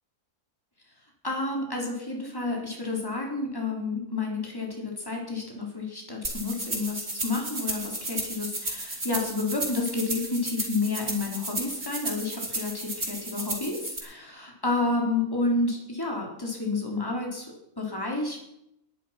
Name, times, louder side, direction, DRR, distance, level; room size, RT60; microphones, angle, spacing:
voice 1, 1.2-18.4, left 3 dB, 15° left, 0 dB, 3.9 m, -30 dB
sound 1, 6.2-14.0, right 2 dB, 50° right, 4.5 m, -34 dB
22.0 x 10.5 x 5.8 m, 0.79 s
omnidirectional pair, 1.5 m